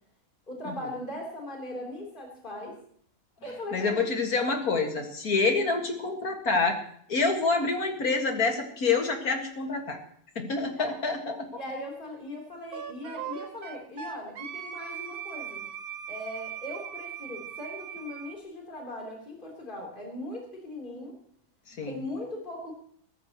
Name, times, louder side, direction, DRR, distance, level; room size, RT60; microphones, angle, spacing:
voice 1, 0.5-2.7 3.4-4.0 10.7-10.9 11.5-15.6 16.1-21.2 21.8-22.7, left 1 dB, 35° left, -2 dB, 3.8 m, -39 dB
voice 2, 3.7-6.8 7.1-10.0 10.4-11.5 21.7-22.0, left 4 dB, 80° left, 3 dB, 2.4 m, -27 dB
Wind instrument woodwind instrument, 12.7-18.4, right 8 dB, 80° right, 1.5 m, -39 dB
22.0 x 13.5 x 3.1 m, 0.63 s
omnidirectional pair, 1.5 m